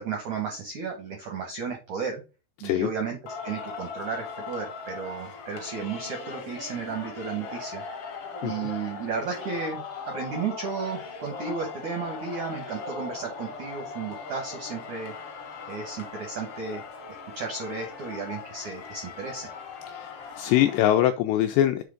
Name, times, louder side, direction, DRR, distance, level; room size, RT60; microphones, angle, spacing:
voice 1, 0.0-2.2 2.6-3.2 3.4-7.8 8.4-15.1 15.7-16.8 17.3-19.5, right 5 dB, 85° right, 3 dB, 1.6 m, -33 dB
Singing, 3.3-20.8, left 5 dB, 70° left, 1.4 m, -39 dB
voice 2, 19.9-21.8, left 12 dB, 85° left, 6 dB, 2.5 m, -23 dB
7.6 x 3.5 x 5.2 m, 0.30 s
omnidirectional pair, 5.5 m